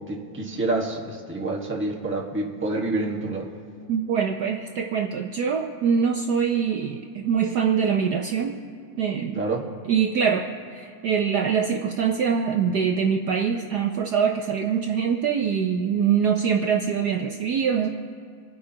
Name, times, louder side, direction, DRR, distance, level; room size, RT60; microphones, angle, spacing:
voice 1, 0.1-3.5 9.3-9.7, right 2 dB, 5° right, -3 dB, 1.2 m, -28 dB
voice 2, 3.9-8.6 9.0-9.4 9.9-17.9, right 7 dB, 65° right, 3 dB, 1.1 m, -24 dB
27.5 x 9.9 x 2.9 m, 2.2 s
omnidirectional pair, 2.2 m